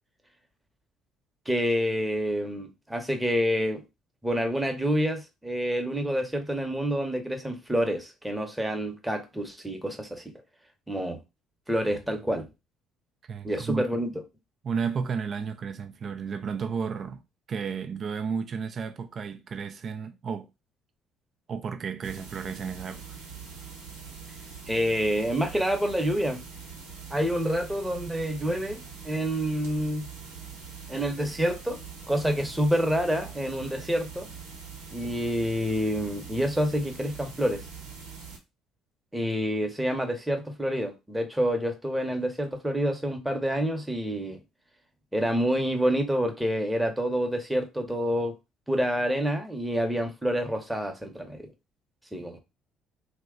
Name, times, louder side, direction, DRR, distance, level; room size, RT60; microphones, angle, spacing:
voice 1, 1.5-3.8 4.2-10.2 10.9-11.2 11.7-12.5 13.4-14.1 24.7-26.4 27.1-30.1 30.9-31.8 32.1-34.3 34.9-37.6 39.1-44.4 45.1-48.3 48.7-51.5 52.1-52.4, equal, 5° right, 0.8 m, -28 dB
voice 2, 13.3-13.8 14.6-17.2 17.5-20.5 21.5-23.0, right 6 dB, 50° right, 0.4 m, -32 dB
sound 1, 22.0-38.4, right 5 dB, 85° right, 1.0 m, -43 dB
3.0 x 2.2 x 3.6 m
hypercardioid pair, 60°, 0 cm